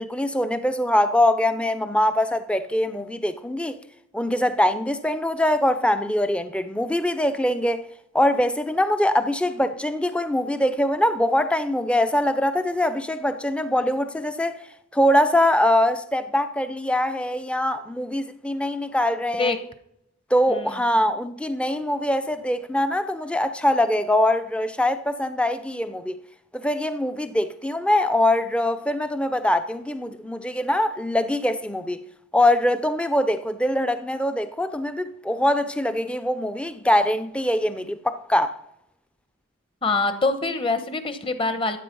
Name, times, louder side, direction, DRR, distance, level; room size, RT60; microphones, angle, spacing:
voice 1, 0.0-3.8 4.1-7.8 8.1-14.6 14.9-19.6 20.3-26.2 26.5-32.0 32.3-38.5, left 1 dB, 5° left, 0.6 m, -23 dB
voice 2, 39.8-41.8, left 3 dB, 25° left, 1.1 m, -24 dB
14.5 x 8.3 x 5.4 m
head